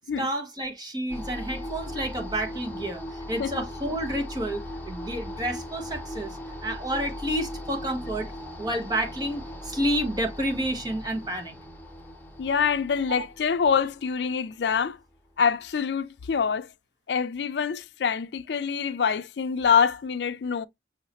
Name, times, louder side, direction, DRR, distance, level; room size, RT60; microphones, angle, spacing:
voice 1, 0.2-8.3 8.6-11.6, right 1 dB, 25° right, 1.2 m, -30 dB
sound 1, 1.1-15.3, equal, 10° left, 1.2 m, -39 dB
voice 2, 12.4-15.0 15.4-16.7 17.1-20.7, left 6 dB, 70° left, 0.4 m, -25 dB
6.3 x 2.8 x 2.8 m
head